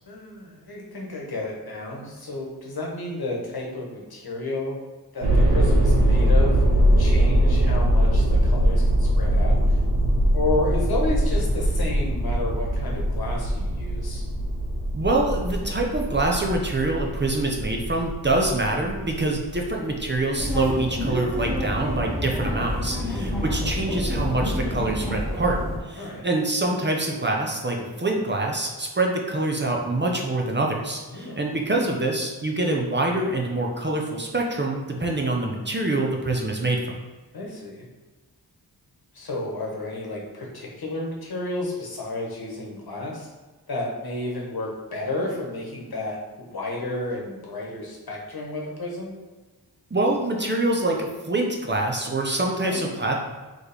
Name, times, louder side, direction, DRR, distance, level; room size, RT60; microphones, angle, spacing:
voice 1, 0.1-4.8 5.1-6.6 7.0-9.8 10.3-14.2 23.1-23.5 26.0-26.2 31.1-31.4 37.3-37.9 39.1-43.3 43.7-49.1 52.6-53.0, left 2 dB, 65° left, -1 dB, 1.1 m, -31 dB
sound 1, 5.2-20.3, right 1 dB, 80° right, 1.0 m, -22 dB
voice 2, 14.9-25.6 25.9-36.9 49.9-53.1, right 2 dB, 25° right, 0 dB, 0.7 m, -25 dB
sound 2, 20.4-25.8, equal, ahead, 1.3 m, -28 dB
4.2 x 3.1 x 3.4 m, 1.3 s
wide cardioid pair, 85°, 40 cm